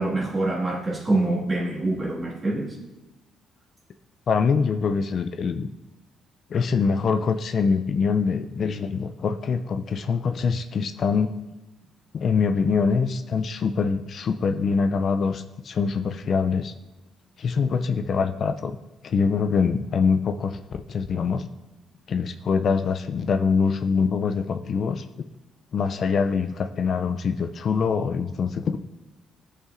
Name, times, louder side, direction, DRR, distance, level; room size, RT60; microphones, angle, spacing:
voice 1, 0.0-2.8, right 2 dB, 25° right, -3 dB, 1.8 m, -25 dB
voice 2, 4.3-5.7 6.5-11.3 12.1-16.7 17.4-18.8 19.0-21.5 22.1-25.0 25.7-28.8, left 5 dB, 55° left, 8 dB, 0.3 m, -24 dB
12.5 x 5.5 x 2.5 m, 1.0 s
cardioid pair, 90°, 0 cm